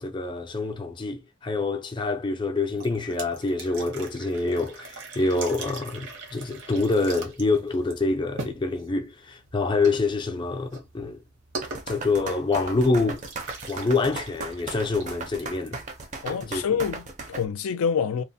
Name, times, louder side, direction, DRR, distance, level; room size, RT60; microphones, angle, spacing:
voice 1, 0.0-11.2 11.9-13.2 13.7-15.8 16.3-16.6, left 3 dB, 20° left, 0.4 m, -26 dB
sound 1, 2.7-16.4, right 3 dB, 65° right, 0.9 m, -42 dB
sound 2, 11.6-17.4, right 3 dB, 35° right, 0.5 m, -36 dB
voice 2, 16.2-18.2, left 6 dB, 90° left, 0.4 m, -27 dB
2.8 x 2.0 x 2.6 m
head